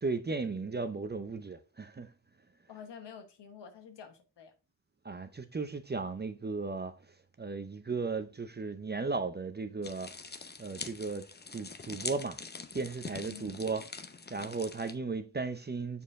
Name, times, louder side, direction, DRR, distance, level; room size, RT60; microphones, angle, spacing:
voice 1, 0.0-2.1 5.0-6.9 7.4-10.1 10.6-12.4 12.7-13.8 14.3-16.0, right 4 dB, 25° right, 0.6 m, -36 dB
voice 2, 2.7-4.5 13.1-13.6, left 7 dB, 85° left, 1.3 m, -49 dB
sound 1, 9.8-14.9, left 4 dB, 25° left, 0.7 m, -44 dB
7.1 x 4.4 x 3.6 m
wide cardioid pair, 95°, 41 cm